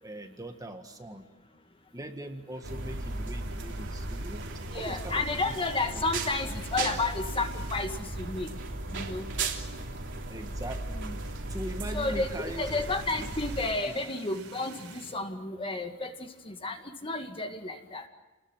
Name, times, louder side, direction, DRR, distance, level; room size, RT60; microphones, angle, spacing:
voice 1, 0.0-1.2 1.9-4.4 4.7-5.5 5.9-6.0 10.3-11.2 11.5-12.8 13.2-13.3 13.9-14.0, right 1 dB, 15° right, 5 dB, 1.8 m, -41 dB
sound 1, 2.4-8.2 8.6-8.8 9.0-9.1 10.2-15.2, right 4 dB, 70° right, 3.9 m, -50 dB
sound 2, 2.6-13.7, right 2 dB, 55° right, 3.1 m, -36 dB
voice 2, 4.7-8.5 8.9-9.3 11.9-12.3 12.6-18.1, left 3 dB, 25° left, 6 dB, 2.0 m, -32 dB
30.0 x 20.5 x 9.0 m, 1.1 s
head